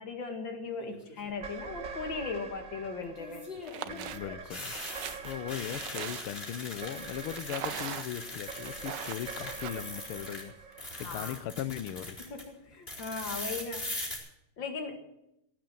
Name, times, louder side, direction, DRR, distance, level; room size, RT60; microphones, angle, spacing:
voice 1, 0.0-3.5 10.9-11.4 12.2-14.0 14.6-15.0, left 4 dB, 65° left, 5 dB, 2.5 m, -38 dB
sound 1, 0.8-1.3 3.2-10.4 10.7-12.4 12.9-14.2, left 1 dB, 25° left, 4.8 m, -41 dB
sound 2, 1.3-11.8, right 5 dB, 45° right, 1.4 m, -46 dB
sound 3, 3.6-4.2 4.6-6.5 7.4-8.3 8.6-9.7, right 10 dB, 65° right, 1.4 m, -40 dB
voice 2, 3.7-12.2, left 11 dB, 90° left, 16 dB, 1.7 m, -39 dB
16.5 x 9.5 x 7.8 m, 0.82 s
omnidirectional pair, 2.3 m